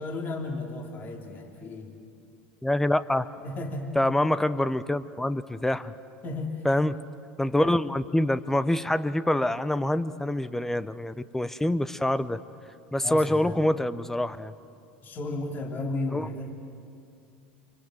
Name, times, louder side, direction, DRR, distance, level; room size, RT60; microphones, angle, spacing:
voice 1, 0.0-1.9 3.4-3.9 6.2-6.6 13.0-13.7 15.0-16.5, left 2 dB, 35° left, 3 dB, 3.0 m, -34 dB
voice 2, 2.6-3.3 4.0-5.9 6.6-7.0 7.4-12.4 12.9-14.5 16.1-16.3, left 1 dB, 5° left, 15 dB, 0.7 m, -26 dB
27.5 x 24.0 x 7.7 m, 2.5 s
hypercardioid pair, 80°, 6 cm